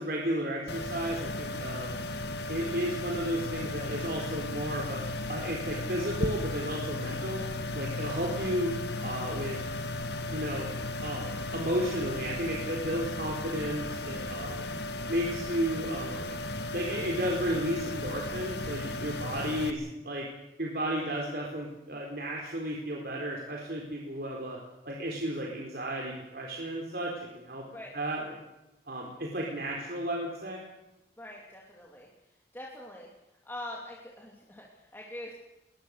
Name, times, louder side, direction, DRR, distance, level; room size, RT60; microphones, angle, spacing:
voice 1, 0.0-2.0 2.5-5.0 5.3-7.4 7.7-8.7 9.0-9.6 10.3-10.7 11.0-14.7 15.1-16.4 16.7-20.3 20.6-24.6 24.8-27.6 27.9-28.4 28.9-30.6, equal, 55° right, -1 dB, 4.4 m, -33 dB
sound 1, 0.7-19.7, left 2 dB, 70° left, 2.0 m, -35 dB
voice 2, 31.2-32.1 32.5-33.1 33.4-35.3, left 1 dB, 10° left, -2 dB, 3.0 m, -43 dB
21.5 x 21.0 x 6.7 m, 0.98 s
head